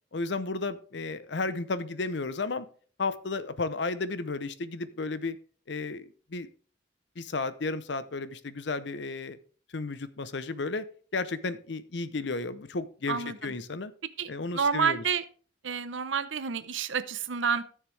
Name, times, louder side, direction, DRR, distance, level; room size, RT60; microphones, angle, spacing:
voice 1, 0.1-2.7 3.0-5.4 5.7-6.5 7.2-9.4 9.7-10.8 11.1-13.9 14.3-15.0, left 3 dB, 65° left, 14 dB, 0.7 m, -33 dB
voice 2, 14.2-15.2 15.6-17.6, right 6 dB, 80° right, 13 dB, 0.7 m, -29 dB
14.5 x 6.6 x 3.3 m, 0.43 s
head